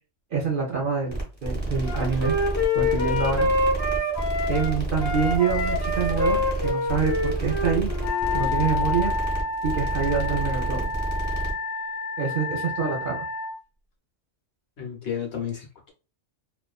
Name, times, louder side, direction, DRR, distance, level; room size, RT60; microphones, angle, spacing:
voice 1, 0.3-2.3 2.7-3.5 4.5-7.9 8.3-9.1 9.6-10.9 12.2-13.2, right 5 dB, 55° right, 0.7 m, -26 dB
sound 1, 1.1-11.5, right 1 dB, 10° right, 0.9 m, -29 dB
Wind instrument woodwind instrument, 1.8-4.7 5.0-8.5, left 2 dB, 30° left, 0.5 m, -26 dB
Wind instrument woodwind instrument 2, 8.0-13.5, left 3 dB, 80° left, 1.1 m, -29 dB
voice 2, 14.8-15.9, left 8 dB, 65° left, 0.9 m, -32 dB
2.5 x 2.3 x 2.3 m
omnidirectional pair, 1.2 m